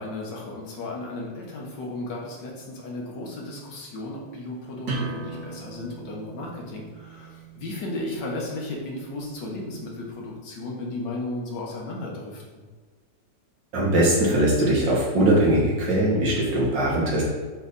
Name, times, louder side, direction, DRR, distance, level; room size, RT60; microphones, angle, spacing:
voice 1, 0.0-12.6, left 2 dB, 75° left, -2 dB, 1.8 m, -34 dB
sound 1, 4.8-10.2, right 3 dB, 65° right, 2.5 m, -39 dB
voice 2, 13.7-17.2, right 1 dB, 85° right, -4 dB, 2.3 m, -21 dB
7.1 x 3.3 x 4.1 m, 1.5 s
omnidirectional pair, 1.9 m